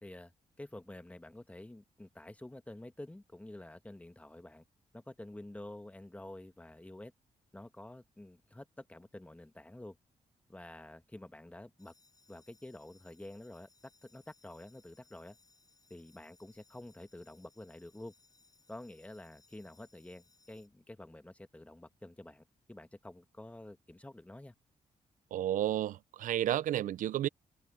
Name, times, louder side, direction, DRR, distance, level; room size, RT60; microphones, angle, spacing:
voice 1, 0.0-0.3 0.6-4.6 4.9-7.1 7.5-10.0 10.5-11.9 12.3-13.7 14.0-15.4 15.9-18.1 18.7-24.5, left 1 dB, 10° left, 1.5 m, -49 dB
sound 1, 11.8-20.7, left 3 dB, 25° left, 6.9 m, -67 dB
voice 2, 25.3-27.3, right 12 dB, 75° right, 0.5 m, -31 dB
cardioid pair, 80°, 13 cm